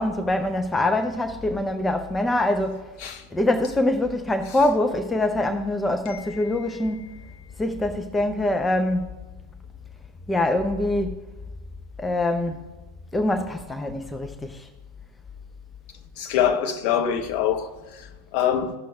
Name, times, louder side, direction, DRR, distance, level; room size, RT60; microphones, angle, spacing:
voice 1, 0.0-2.9 3.3-7.1 7.6-9.0 10.3-11.2 12.0-12.6 13.1-14.7, left 1 dB, 10° left, 0.5 m, -24 dB
voice 2, 6.1-6.5 16.2-18.7, left 9 dB, 45° left, 0.9 m, -25 dB
15.0 x 6.0 x 2.3 m
figure-of-eight pair, 90°, 0 cm